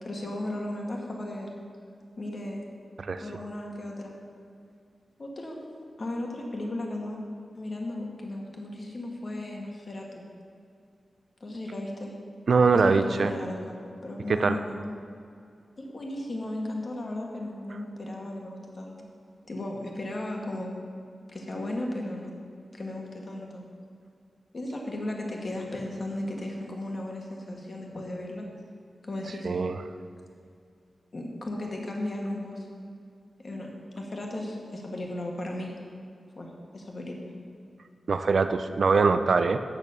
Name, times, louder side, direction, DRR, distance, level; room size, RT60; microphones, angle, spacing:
voice 1, 0.0-1.5 2.2-2.6 3.2-4.2 5.2-5.6 6.0-7.2 7.5-10.2 11.4-12.1 12.7-14.8 15.8-19.1 19.5-20.7 21.3-22.4 22.7-23.6 24.5-28.5 29.0-29.5 31.1-32.7 33.4-33.7 33.9-35.7 36.3-37.3, left 1 dB, 40° left, 0 dB, 1.5 m, -35 dB
voice 2, 12.5-13.3 14.4-14.6 29.4-29.8 38.1-39.6, right 4 dB, 65° right, 9 dB, 0.4 m, -22 dB
8.8 x 6.3 x 6.7 m, 2.4 s
wide cardioid pair, 125°, 0 cm